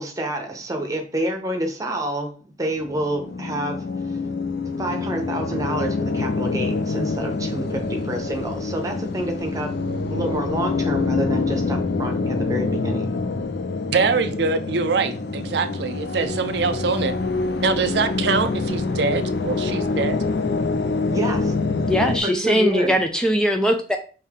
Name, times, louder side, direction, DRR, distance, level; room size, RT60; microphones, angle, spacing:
voice 1, 0.0-3.8 4.8-9.7 10.1-13.2 21.1-21.5 22.2-22.9, right 1 dB, 20° right, 3 dB, 0.8 m, -28 dB
sound 1, 2.8-22.2, left 3 dB, 65° left, 0.5 m, -26 dB
voice 2, 13.9-17.1 17.6-20.2, right 4 dB, 70° right, 9 dB, 0.5 m, -23 dB
voice 3, 21.9-24.0, equal, 5° left, 4 dB, 0.3 m, -20 dB
5.5 x 2.7 x 3.5 m, 0.37 s
head